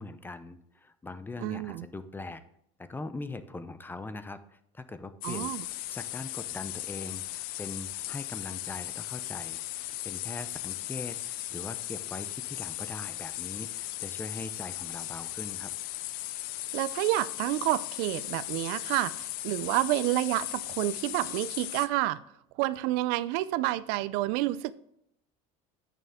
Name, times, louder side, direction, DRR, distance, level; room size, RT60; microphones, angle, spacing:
voice 1, 0.0-2.4 2.8-5.5 5.9-15.7, left 3 dB, 10° left, 12 dB, 0.6 m, -41 dB
voice 2, 1.4-1.9 5.2-5.6 16.7-22.2 22.6-24.7, right 16 dB, 70° right, 17 dB, 0.5 m, -29 dB
sound 1, 5.2-21.9, left 16 dB, 65° left, 0.5 m, -37 dB
9.0 x 6.6 x 3.6 m, 0.75 s
supercardioid pair, 120°, 16 cm